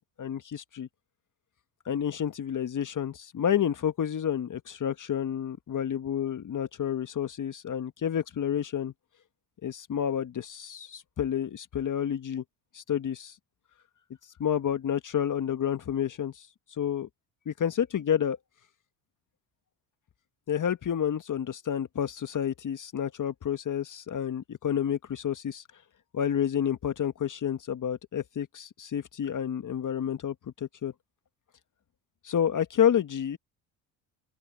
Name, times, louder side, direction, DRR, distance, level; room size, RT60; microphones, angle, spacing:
voice 1, 0.2-0.9 1.8-8.9 9.6-12.4 12.7-13.3 14.4-16.5 16.8-17.1 17.4-18.4 20.5-25.6 26.1-30.9 32.2-33.4, left 9 dB, 40° left, 1.6 m, -29 dB
open air
hypercardioid pair, 65°, 45 cm